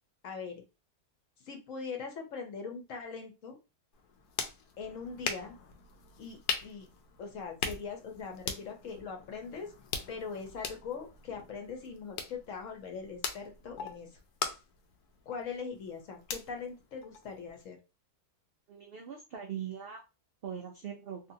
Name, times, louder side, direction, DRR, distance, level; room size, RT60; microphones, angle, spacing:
voice 1, 0.2-0.6 1.4-3.6 4.8-5.6 6.2-6.9 7.2-9.7 10.1-14.1 15.3-17.8, left 5 dB, 60° left, 3 dB, 1.0 m, -41 dB
sound 1, 3.9-17.6, left 6 dB, 85° left, 1.1 m, -41 dB
voice 2, 18.7-20.0 20.4-21.2, right 8 dB, 85° right, 2 dB, 0.5 m, -41 dB
2.8 x 2.6 x 2.6 m, 0.28 s
omnidirectional pair, 1.6 m